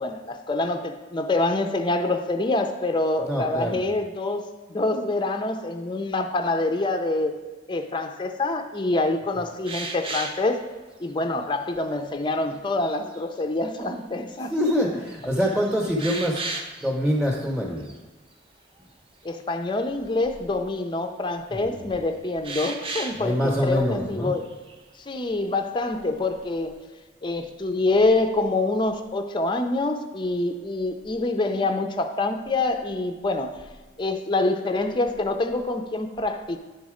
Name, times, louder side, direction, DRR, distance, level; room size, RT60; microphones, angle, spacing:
voice 1, 0.0-7.4 7.7-10.6 11.0-14.5 19.2-24.4 25.0-26.7 27.2-33.6 34.0-36.6, left 2 dB, 25° left, 6 dB, 0.5 m, -26 dB
voice 2, 3.2-3.9 14.5-16.4 16.8-17.9 21.5-21.8 23.1-24.3, equal, 5° right, -1 dB, 0.9 m, -25 dB
sound 1, 9.6-10.5 11.1-11.2 11.7-12.2 12.8-13.3 13.8-13.9 14.3-14.8 15.1-16.9 17.3-17.5 17.8-18.0 22.4-23.3 24.2-24.8, right 3 dB, 25° right, 0.6 m, -35 dB
10.5 x 4.2 x 4.9 m, 1.2 s
head